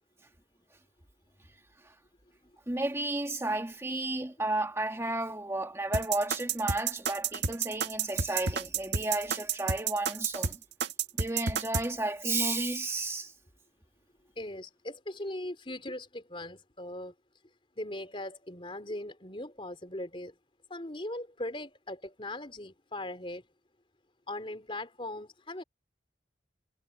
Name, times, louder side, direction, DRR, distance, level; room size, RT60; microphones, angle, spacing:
voice 1, 2.7-10.6 11.2-13.3, right 2 dB, 15° right, 1.7 m, -32 dB
sound 1, 5.9-11.9, right 6 dB, 85° right, 1.9 m, -30 dB
voice 2, 14.4-17.1 17.8-20.3 20.7-23.4 24.3-25.6, left 1 dB, 30° left, 3.7 m, -39 dB
head